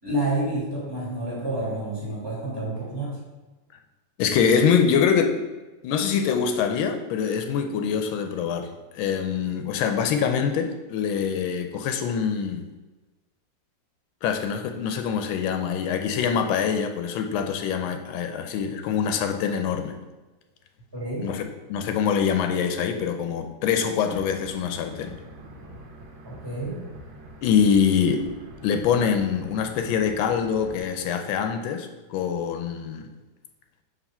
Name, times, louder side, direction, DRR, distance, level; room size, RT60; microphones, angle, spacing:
voice 1, 0.0-3.2 20.9-21.3 26.2-26.8, right 1 dB, 10° right, -6 dB, 1.8 m, -29 dB
voice 2, 4.2-5.4 5.8-12.6 14.2-19.9 21.2-21.4 21.7-25.2 27.4-28.3 28.6-33.1, left 7 dB, 85° left, 6 dB, 1.4 m, -24 dB
sound 1, 24.1-30.8, right 2 dB, 85° right, 1.6 m, -45 dB
4.9 x 3.5 x 5.4 m, 1.2 s
omnidirectional pair, 2.1 m